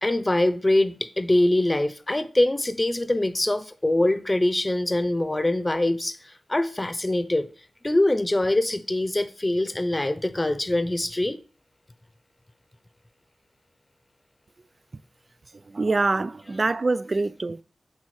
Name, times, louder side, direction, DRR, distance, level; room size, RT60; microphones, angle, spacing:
voice 1, 0.0-7.5 7.8-11.4, left 1 dB, 25° left, 0.8 m, -23 dB
voice 2, 15.5-17.6, right 3 dB, 50° right, 0.4 m, -25 dB
8.4 x 3.5 x 4.9 m
cardioid pair, 45°, 0 cm